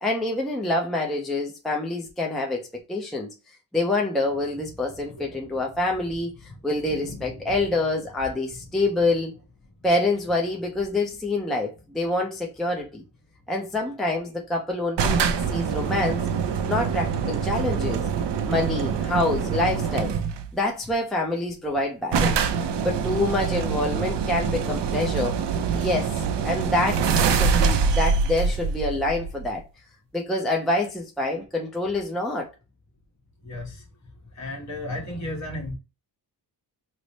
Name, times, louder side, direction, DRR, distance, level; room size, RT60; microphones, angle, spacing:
voice 1, 0.0-3.3 3.7-9.3 9.8-13.0 13.5-15.2 15.5-16.2 16.7-18.0 18.5-20.1 20.5-22.4 22.8-25.4 25.7-26.2 26.4-29.6 30.1-32.5, left 2 dB, ahead, 0.5 m, -26 dB
voice 2, 6.9-7.3 33.4-33.7 34.4-35.8, left 1 dB, 40° left, 1.3 m, -34 dB
sound 1, 15.0-20.5 21.5-21.6 21.8-21.9 22.1-29.6, right 6 dB, 85° right, 0.6 m, -25 dB
3.2 x 2.0 x 3.9 m
wide cardioid pair, 155°, 41 cm